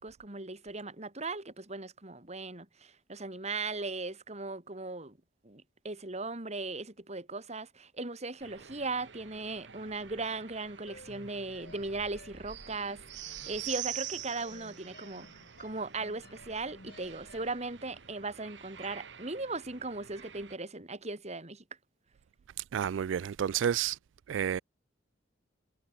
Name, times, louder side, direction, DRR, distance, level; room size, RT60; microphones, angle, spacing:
voice 1, 0.0-5.2 5.4-13.0 13.5-15.3 15.6-21.6, right 3 dB, 35° right, 3.1 m, -38 dB
sound 1, 8.4-20.6, right 10 dB, 70° right, 1.5 m, -46 dB
sound 2, 10.9-17.7, left 2 dB, 55° left, 5.7 m, -56 dB
voice 2, 22.7-24.0 24.3-24.6, right 9 dB, 85° right, 0.3 m, -30 dB
head